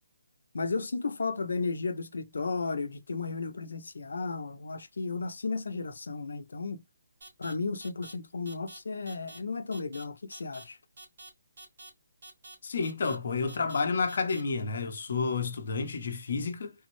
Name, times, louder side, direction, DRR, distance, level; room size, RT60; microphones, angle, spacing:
voice 1, 0.5-6.8 7.4-10.8, left 4 dB, 80° left, 0.7 m, -34 dB
sound 1, 7.2-7.5 7.8-8.1 8.5-8.8 9.1-9.4 9.7-10.0 10.3-10.6 11.0-11.3 11.6-11.9 12.2-12.5 12.8-13.2 13.5-13.8 14.1-14.4, right 2 dB, 45° right, 1.5 m, -48 dB
voice 2, 12.6-16.7, left 4 dB, 50° left, 0.8 m, -30 dB
3.5 x 2.1 x 3.1 m
hypercardioid pair, 175°, 0 cm